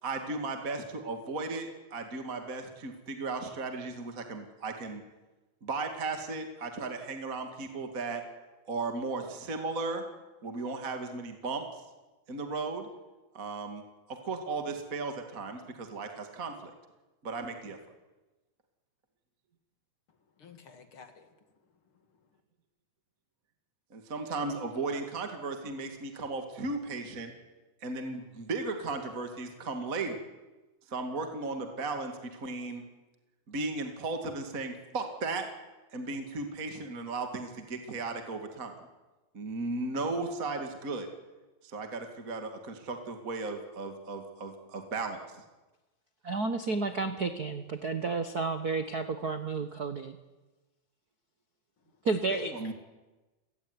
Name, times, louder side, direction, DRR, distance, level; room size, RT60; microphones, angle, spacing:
voice 1, 0.0-5.0 5.6-8.2 8.7-10.0 10.4-11.6 12.3-12.9 13.3-13.8 14.1-16.7 17.2-17.8 23.9-27.3 27.8-30.2 30.9-32.8 33.5-35.4 35.9-38.7 39.3-41.1 41.7-45.2 52.5-52.7, right 3 dB, 30° right, 5 dB, 2.2 m, -35 dB
voice 2, 20.4-21.3 52.3-52.7, left 6 dB, 40° left, 7 dB, 2.8 m, -47 dB
voice 3, 46.2-50.2 52.0-52.5, right 3 dB, 70° right, 9 dB, 0.9 m, -31 dB
28.5 x 17.5 x 9.9 m, 1.1 s
omnidirectional pair, 3.8 m